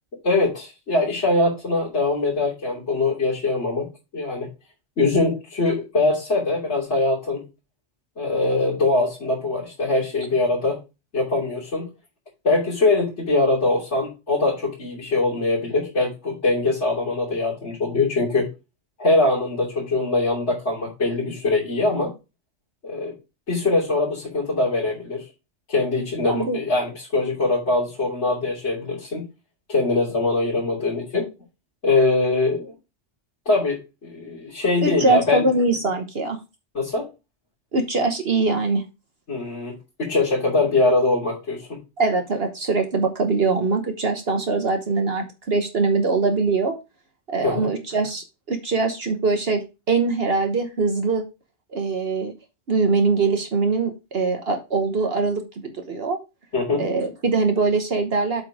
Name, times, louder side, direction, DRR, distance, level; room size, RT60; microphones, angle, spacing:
voice 1, 0.2-3.9 4.1-4.5 5.0-7.4 8.2-10.8 11.1-11.9 12.4-18.5 19.0-22.1 22.8-23.1 23.5-25.3 25.7-29.2 29.7-31.3 31.8-32.7 33.5-35.5 36.8-37.1 39.3-41.8 47.4-47.7 56.5-56.8, left 2 dB, 75° left, -7 dB, 3.4 m, -22 dB
voice 2, 26.2-26.6 34.8-36.4 37.7-38.8 42.0-46.7 47.3-49.6 49.9-51.2 51.7-52.3 52.7-56.2 56.8-58.4, right 3 dB, 55° right, 5 dB, 1.4 m, -22 dB
7.8 x 4.6 x 4.9 m, 0.26 s
omnidirectional pair, 1.2 m